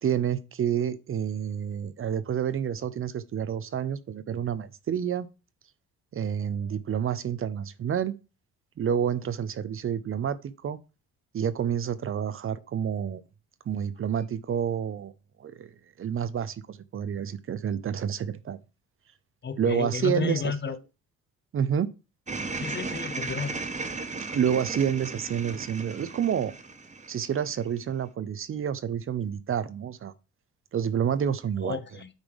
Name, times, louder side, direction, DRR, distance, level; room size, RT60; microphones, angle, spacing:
voice 1, 0.0-5.3 6.1-8.1 8.8-10.8 11.3-13.2 13.7-15.1 15.4-15.7 16.0-18.6 19.6-20.8 21.5-21.9 24.3-26.5 27.1-30.1 30.7-31.8, right 8 dB, 45° right, 0.6 m, -29 dB
voice 2, 19.4-20.8 22.6-23.5 31.6-32.1, left 5 dB, 35° left, 0.9 m, -32 dB
sound 1, 22.3-27.7, right 3 dB, 25° right, 1.0 m, -36 dB
8.9 x 3.3 x 5.3 m
cardioid pair, 90°, 30 cm